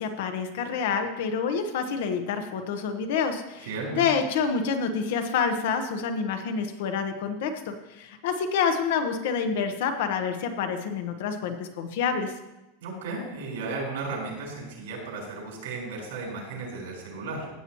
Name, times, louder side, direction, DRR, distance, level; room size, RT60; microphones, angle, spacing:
voice 1, 0.0-12.3, left 6 dB, 55° left, 7 dB, 1.1 m, -28 dB
voice 2, 3.7-4.0 12.8-17.5, right 3 dB, 85° right, -1 dB, 4.7 m, -34 dB
15.5 x 8.7 x 3.1 m, 0.98 s
supercardioid pair, 180°, 0 cm